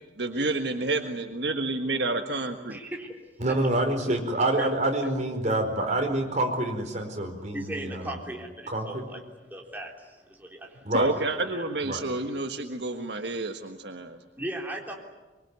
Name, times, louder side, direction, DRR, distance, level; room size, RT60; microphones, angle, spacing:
voice 1, 0.2-2.8 10.9-14.2, right 2 dB, 70° right, 5 dB, 1.6 m, -29 dB
voice 2, 2.7-3.1 3.5-3.6 4.6-4.7 7.5-9.2 9.5-11.6 14.4-14.9, right 1 dB, 10° right, -1 dB, 3.6 m, -38 dB
voice 3, 3.4-8.2 8.7-9.1 10.8-11.1 11.8-12.0, right 1 dB, 40° right, 3 dB, 4.6 m, -27 dB
24.0 x 24.0 x 9.6 m, 1.2 s
head